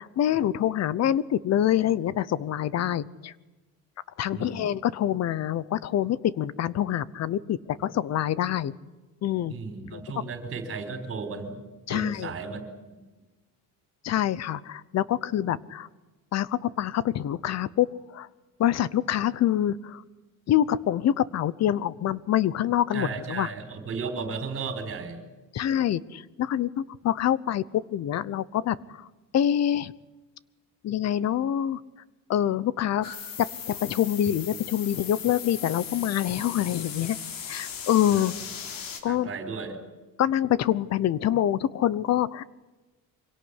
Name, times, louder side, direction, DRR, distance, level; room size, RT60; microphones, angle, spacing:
voice 1, 0.0-3.3 4.2-8.7 9.2-9.5 9.9-10.2 11.9-12.3 14.0-15.9 16.3-18.3 18.6-20.0 20.5-23.5 25.5-29.1 29.3-29.9 30.8-31.8 32.3-33.1 33.4-37.2 37.5-38.3 39.0-39.3 40.2-42.4, left 11 dB, 45° left, 20 dB, 0.9 m, -26 dB
voice 2, 4.3-4.7 7.8-7.9 9.5-12.6 22.9-25.2 38.1-38.3 39.0-39.8, right 4 dB, 35° right, 7 dB, 4.5 m, -35 dB
sound 1, 33.0-39.0, left 7 dB, 70° left, 3.7 m, -38 dB
25.0 x 17.5 x 9.8 m, 1.2 s
cardioid pair, 150°, 35 cm